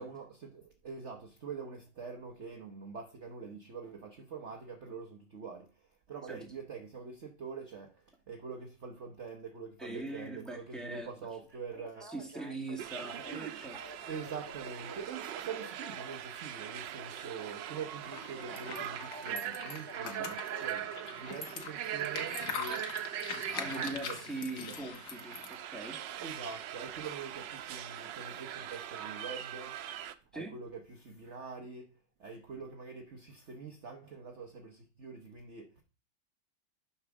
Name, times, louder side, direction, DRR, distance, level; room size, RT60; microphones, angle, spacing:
voice 1, 0.0-12.1 14.1-22.9 23.7-24.8 26.2-29.7 30.3-31.9 32.2-35.8, right 5 dB, 45° right, 1.1 m, -45 dB
voice 2, 9.8-11.1 12.1-13.8 20.0-20.3 23.5-26.0 30.3-30.5, right 2 dB, ahead, 1.9 m, -41 dB
Telephone, 11.5-21.1 22.7-22.8, right 2 dB, 15° right, 1.0 m, -50 dB
sound 1, 12.8-30.1, right 11 dB, 90° right, 1.4 m, -41 dB
sound 2, 18.0-25.6, left 5 dB, 65° left, 1.7 m, -43 dB
10.5 x 4.4 x 6.0 m
omnidirectional pair, 1.9 m